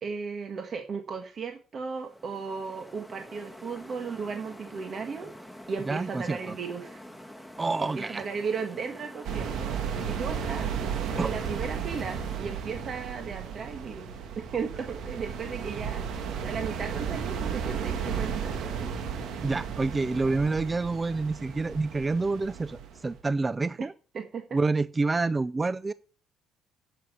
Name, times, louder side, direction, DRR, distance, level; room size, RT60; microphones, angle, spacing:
voice 1, 0.0-5.3 5.7-7.0 7.8-10.8 11.2-18.9 24.1-24.6, right 5 dB, 45° right, 5 dB, 1.5 m, -36 dB
sound 1, 1.8-12.4, equal, 5° right, 2.0 m, -46 dB
voice 2, 5.9-6.5 7.6-8.2 11.2-11.3 19.4-23.9 24.5-25.9, right 3 dB, 25° right, 16 dB, 0.4 m, -28 dB
sound 2, 9.2-23.2, right 7 dB, 70° right, 1.7 m, -34 dB
7.8 x 7.6 x 8.1 m, 0.39 s
cardioid pair, 85°, 0 cm